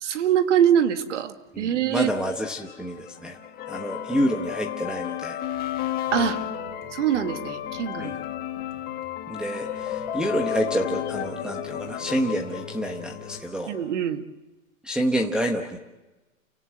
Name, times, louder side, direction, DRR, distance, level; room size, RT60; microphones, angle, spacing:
voice 1, 0.0-2.1 6.1-6.4 6.9-8.2 13.7-14.2, right 9 dB, 60° right, 8 dB, 2.0 m, -23 dB
voice 2, 1.5-3.4 3.7-5.4 8.0-8.2 9.3-13.7 14.8-15.8, equal, ahead, -1 dB, 1.0 m, -28 dB
sound 1, 2.0-13.8, left 12 dB, 20° left, 1.6 m, -34 dB
sound 2, 6.1-13.4, left 9 dB, 45° left, 3.3 m, -36 dB
29.5 x 17.5 x 7.7 m, 1.1 s
hypercardioid pair, 145°, 42 cm